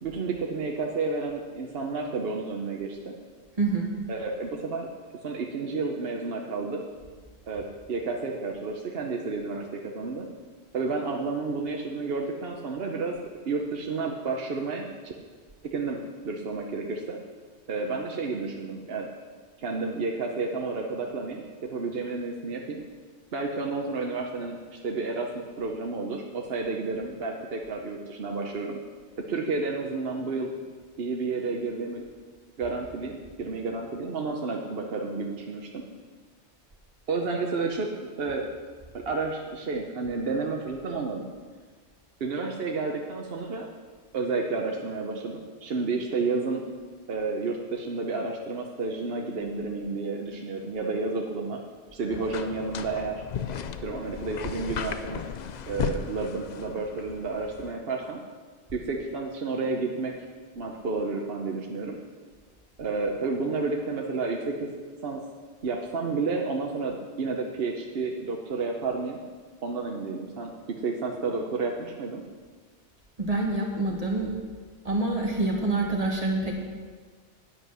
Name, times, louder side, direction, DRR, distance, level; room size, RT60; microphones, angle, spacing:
voice 1, 0.0-3.1 4.1-4.9 5.2-6.8 7.5-7.6 7.9-10.3 10.7-13.2 13.5-15.1 15.7-16.0 16.2-17.2 17.7-19.1 19.6-21.4 21.7-22.8 23.3-28.8 29.3-32.0 32.6-35.8 37.1-38.5 38.9-41.2 42.2-43.7 44.1-46.6 47.1-51.6 51.9-53.2 53.8-55.2 55.7-58.2 58.7-60.1 60.5-62.0 62.8-64.7 65.0-65.2 65.6-69.2 69.6-72.2, right 3 dB, 60° right, 1 dB, 1.0 m, -31 dB
voice 2, 3.6-3.9 73.2-74.3 74.8-76.5, right 2 dB, 35° right, -1 dB, 1.7 m, -26 dB
sound 1, 52.1-57.7, left 7 dB, 55° left, 0.5 m, -35 dB
9.7 x 8.1 x 6.2 m, 1.5 s
omnidirectional pair, 1.2 m